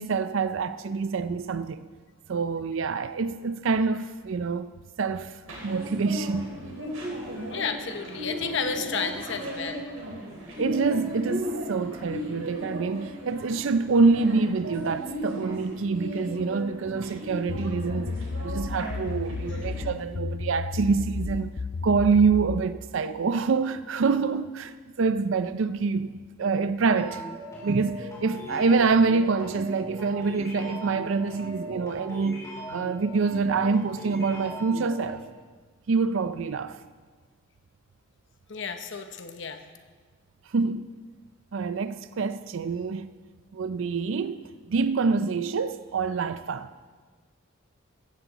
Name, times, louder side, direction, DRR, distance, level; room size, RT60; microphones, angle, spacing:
voice 1, 0.0-1.9 2.3-4.7 5.0-5.4 5.6-6.6 10.6-18.1 18.4-27.2 27.6-35.2 35.9-36.8 40.5-40.8 41.5-43.1 43.5-46.7, right 4 dB, 65° right, 0.4 m, -26 dB
sound 1, 5.4-19.8, equal, 80° right, 4.9 m, -36 dB
voice 2, 7.4-9.8 38.5-39.6, left 5 dB, 60° left, 0.9 m, -32 dB
sound 2, 17.5-22.7, left 4 dB, 45° left, 0.4 m, -33 dB
sound 3, 27.0-35.1, right 1 dB, 15° left, 5.1 m, -39 dB
15.0 x 15.0 x 4.0 m
head